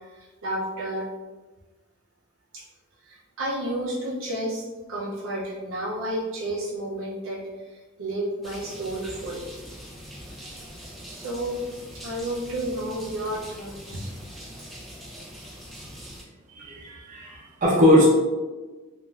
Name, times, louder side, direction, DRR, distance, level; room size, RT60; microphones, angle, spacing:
voice 1, 0.1-1.1 2.5-2.6 3.0-9.4 11.1-11.6 11.9-14.1, right 1 dB, 70° right, -4 dB, 0.5 m, -31 dB
sound 1, 8.4-16.2, equal, ahead, 0.3 m, -42 dB
voice 2, 16.6-18.1, left 1 dB, 35° right, -6 dB, 0.7 m, -20 dB
3.1 x 2.4 x 2.2 m, 1.2 s
head